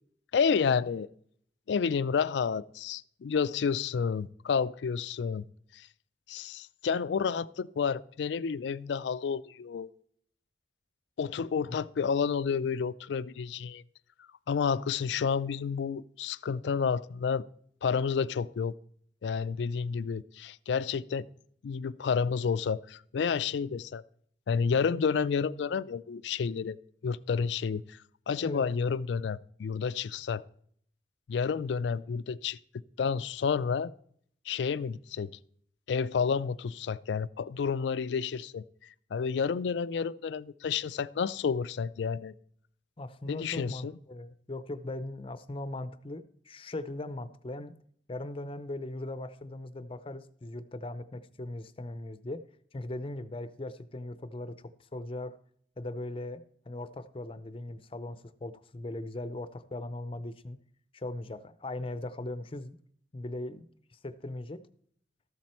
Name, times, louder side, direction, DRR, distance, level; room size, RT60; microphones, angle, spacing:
voice 1, 0.3-1.1 1.7-5.4 5.7-5.9 6.3-9.9 11.2-13.8 14.5-17.4 17.8-18.8 19.2-21.3 21.6-24.0 24.5-26.8 27.0-28.0 28.3-30.4 31.3-32.6 33.0-33.9 34.5-35.3 35.9-38.6 39.1-42.3 43.3-43.9, left 6 dB, 75° left, 0.4 m, -30 dB
voice 2, 43.0-47.7 48.1-52.4 52.7-54.5 54.8-55.4 55.8-60.6 60.9-62.8 63.1-63.7 63.9-64.6, left 2 dB, 30° left, 0.6 m, -39 dB
13.5 x 7.6 x 4.3 m
head